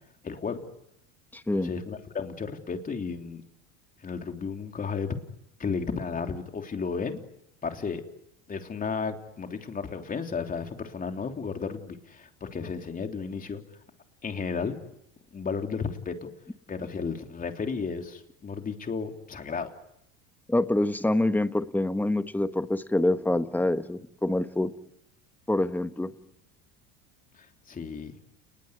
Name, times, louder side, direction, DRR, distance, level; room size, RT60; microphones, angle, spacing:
voice 1, 0.2-0.6 1.5-3.4 4.0-5.2 5.6-7.2 7.6-8.0 8.5-13.6 14.2-14.8 15.3-16.3 16.7-19.7 27.7-28.1, left 5 dB, 25° left, 5 dB, 3.4 m, -33 dB
voice 2, 1.3-1.7 20.5-24.7 25.5-26.1, left 1 dB, 5° left, 10 dB, 1.4 m, -26 dB
29.5 x 20.5 x 9.7 m, 0.81 s
supercardioid pair, 105°, 33 cm